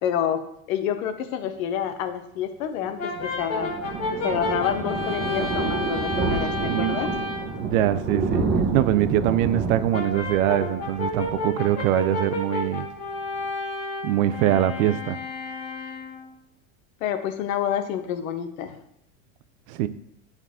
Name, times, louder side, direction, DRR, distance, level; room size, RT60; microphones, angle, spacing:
voice 1, 0.0-3.8 4.2-7.1 17.0-18.8, left 9 dB, 90° left, 0.8 m, -28 dB
Thunder, 2.8-12.2 12.5-12.8 13.1-13.2 13.3-13.4, right 4 dB, 25° right, 1.1 m, -29 dB
Brass instrument, 3.0-7.6 9.9-16.3, left 2 dB, 40° left, 1.5 m, -31 dB
voice 2, 6.6-7.0 7.6-8.4 8.7-12.9 14.0-15.2 19.7-19.9, right 12 dB, 75° right, 0.6 m, -23 dB
8.3 x 4.0 x 3.5 m
supercardioid pair, 125°, 40 cm